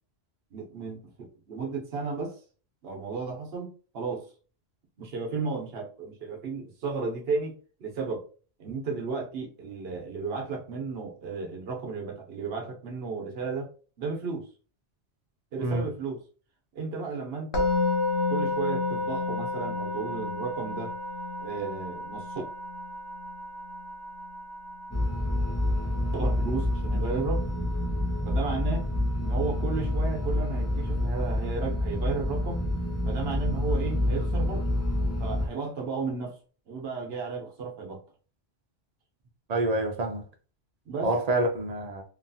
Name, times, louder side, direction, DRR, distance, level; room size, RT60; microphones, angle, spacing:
voice 1, 0.5-2.4 2.8-4.3 5.0-8.2 8.6-13.7 14.0-14.5 15.5-16.2 16.7-17.7 18.3-20.9 21.4-22.4 26.1-27.4 28.2-28.8 29.2-32.6 33.1-34.6 35.2-36.4 36.7-38.0 40.9-41.1, right 4 dB, 65° right, 1.0 m, -33 dB
Musical instrument, 17.5-28.6, left 3 dB, 80° left, 0.9 m, -32 dB
sound 1, 24.9-35.5, left 1 dB, 15° left, 0.7 m, -28 dB
voice 2, 39.5-40.2 41.0-42.0, right 2 dB, 50° right, 0.5 m, -27 dB
2.9 x 2.3 x 2.6 m
omnidirectional pair, 1.1 m